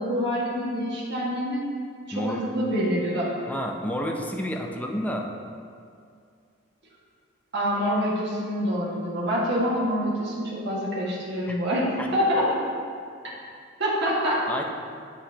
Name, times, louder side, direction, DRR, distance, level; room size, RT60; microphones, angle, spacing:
voice 1, 0.0-1.6 2.1-3.3 7.5-12.6 13.8-14.4, equal, 65° right, -6 dB, 1.8 m, -26 dB
voice 2, 2.1-2.4 3.5-5.3 11.5-11.6 12.0-12.1 14.5-14.6, equal, 10° left, 1 dB, 0.6 m, -30 dB
8.7 x 7.2 x 2.9 m, 2.3 s
head